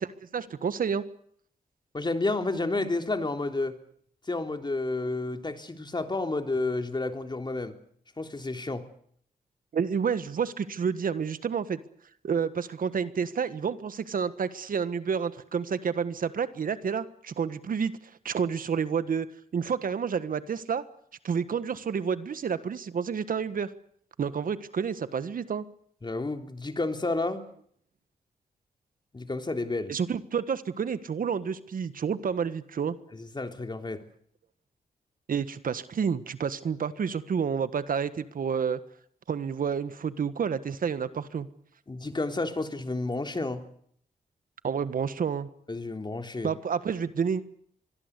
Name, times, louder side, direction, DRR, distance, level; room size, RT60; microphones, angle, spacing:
voice 1, 0.3-1.0 9.7-11.8 12.2-17.9 18.2-19.3 19.5-20.8 21.2-23.7 24.2-25.6 29.9-33.0 35.3-38.8 39.3-41.5 44.6-45.5 46.4-47.4, right 6 dB, 65° right, 13 dB, 1.5 m, -29 dB
voice 2, 1.9-3.7 4.3-7.7 8.2-8.8 26.0-27.4 29.1-29.9 33.1-34.0 41.9-43.6 45.7-46.5, left 2 dB, 30° left, 6 dB, 3.4 m, -30 dB
25.0 x 21.5 x 8.3 m, 0.65 s
cardioid pair, 70°, 15 cm